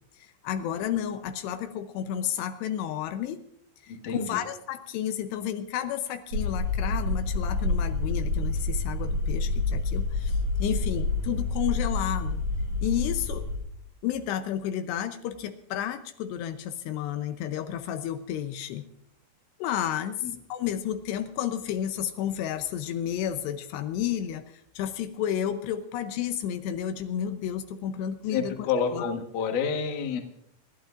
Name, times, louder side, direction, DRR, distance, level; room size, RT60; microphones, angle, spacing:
voice 1, 0.4-3.4 3.8-12.4 12.8-13.5 14.0-18.8 19.6-20.2 20.5-24.4 24.8-29.1, left 10 dB, 85° left, 8 dB, 2.9 m, -31 dB
voice 2, 3.9-4.4 20.2-20.3 28.3-30.2, left 6 dB, 60° left, 4 dB, 2.5 m, -29 dB
sound 1, 6.3-13.6, left 3 dB, 50° right, 2.7 m, -28 dB
28.0 x 11.5 x 2.5 m, 0.73 s
omnidirectional pair, 4.8 m